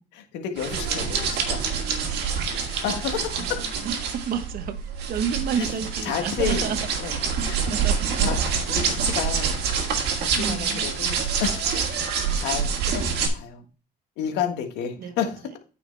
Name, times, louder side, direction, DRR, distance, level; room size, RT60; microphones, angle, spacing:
voice 1, 0.1-2.0 2.6-3.7 5.6-5.7 6.0-6.7 7.0-7.2 7.5-7.7 8.2-8.4 8.7-9.6 10.2-11.8 12.4-13.6 14.2-15.4, left 8 dB, 90° left, 1.6 m, -31 dB
sound 1, 0.6-13.3, right 6 dB, 80° right, 1.7 m, -26 dB
voice 2, 3.8-4.8 5.1-6.8 7.6-8.0 8.7-9.1 10.3-10.9 12.2-12.5 13.2-13.3 15.0-15.2, right 7 dB, 60° right, 1.1 m, -31 dB
9.1 x 5.8 x 3.3 m
cardioid pair, 110°, 17 cm